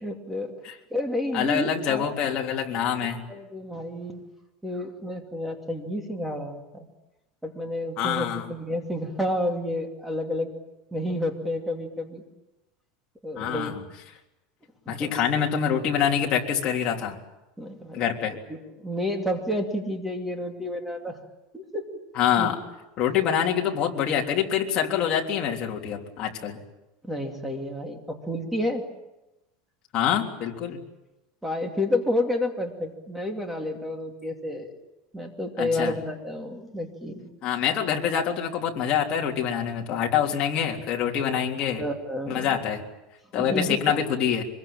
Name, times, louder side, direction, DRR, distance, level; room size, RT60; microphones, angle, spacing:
voice 1, 0.0-0.5 0.9-2.1 3.3-4.2 4.6-6.9 7.4-10.5 10.9-12.2 13.2-13.7 14.9-15.1 17.6-18.1 18.5-21.2 21.5-21.8 22.4-22.5 27.0-28.8 31.4-34.7 35.1-37.3 41.8-42.5 43.4-43.8, left 1 dB, 5° right, 4 dB, 2.7 m, -30 dB
voice 2, 1.3-3.2 8.0-8.5 13.4-13.8 14.9-17.2 17.9-18.3 22.2-22.6 23.0-26.6 29.9-30.8 35.6-35.9 37.4-41.8 42.3-42.8 43.3-44.4, left 8 dB, 35° left, 0 dB, 3.5 m, -25 dB
25.0 x 22.0 x 8.9 m, 0.97 s
supercardioid pair, 165°, 3 cm